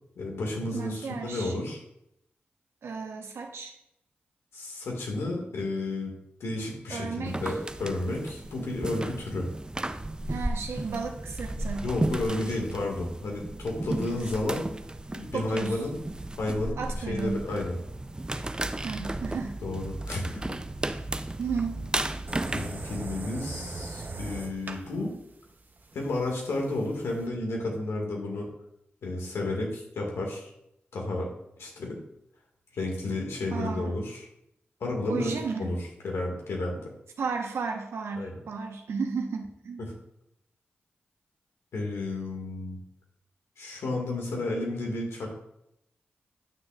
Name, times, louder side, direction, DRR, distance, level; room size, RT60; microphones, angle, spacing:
voice 1, 0.2-1.8 4.5-6.1 6.4-9.5 11.8-14.7 15.1-16.0 16.4-17.8 19.6-20.5 22.5-25.1 25.9-28.5 29.0-30.5 30.9-31.3 31.6-32.0 32.7-34.3 34.8-35.3 35.6-35.8 36.0-36.8 38.2-38.4 41.7-42.8 43.6-45.3, left 2 dB, 85° left, 0 dB, 1.9 m, -32 dB
voice 2, 0.7-1.5 2.8-3.7 6.9-7.5 10.3-11.8 15.3-15.8 16.8-17.4 18.8-19.6 21.4-21.9 33.5-34.0 35.1-35.7 37.2-39.8, right 5 dB, 80° right, 3 dB, 1.0 m, -33 dB
sound 1, 7.2-23.1, right 1 dB, 20° right, 0.5 m, -34 dB
sound 2, 22.3-27.3, right 2 dB, 45° right, 0.8 m, -39 dB
9.5 x 6.4 x 2.4 m, 0.79 s
cardioid pair, 45°, 4 cm